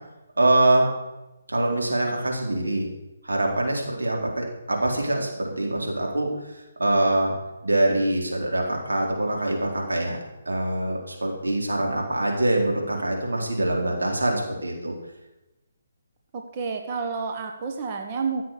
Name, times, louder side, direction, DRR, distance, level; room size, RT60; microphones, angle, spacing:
voice 1, 0.4-0.9 1.5-2.9 3.2-7.4 7.6-10.2 10.5-15.0, right 1 dB, 90° right, 0 dB, 3.9 m, -24 dB
voice 2, 16.3-18.4, right 5 dB, 35° right, 3 dB, 1.3 m, -30 dB
15.0 x 7.6 x 6.7 m, 1.0 s
figure-of-eight pair, 150°, 0 cm